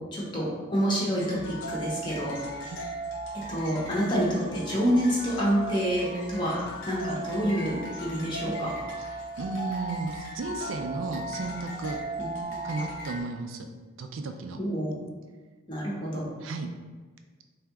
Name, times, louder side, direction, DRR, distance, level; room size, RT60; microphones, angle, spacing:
voice 1, 0.0-2.3 3.3-6.6 6.9-8.7 12.2-12.6 14.6-15.0 15.7-16.3, equal, 25° left, -5 dB, 0.7 m, -28 dB
sound 1, 1.2-13.2, right 1 dB, 70° left, 0.7 m, -37 dB
voice 2, 9.0-12.0 12.6-13.7 14.0-14.6 16.4-16.7, right 3 dB, 75° right, 6 dB, 0.4 m, -34 dB
3.4 x 2.8 x 3.5 m, 1.4 s
head